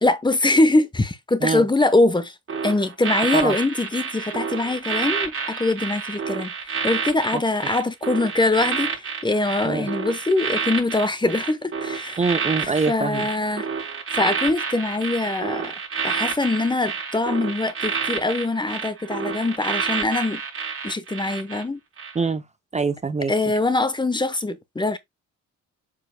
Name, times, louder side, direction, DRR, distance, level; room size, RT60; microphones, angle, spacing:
voice 1, 0.0-2.3 2.6-12.2 12.6-13.7 14.1-15.7 16.0-20.4 20.8-21.8 23.3-25.0, left 2 dB, 15° left, 1.0 m, -23 dB
sound 1, 2.5-21.6 22.0-22.2, right 5 dB, 45° right, 4.2 m, -29 dB
voice 2, 12.2-13.3 22.1-22.4 22.7-23.3, right 4 dB, 25° right, 0.7 m, -24 dB
7.3 x 6.5 x 2.2 m
cardioid pair, 90°, 30 cm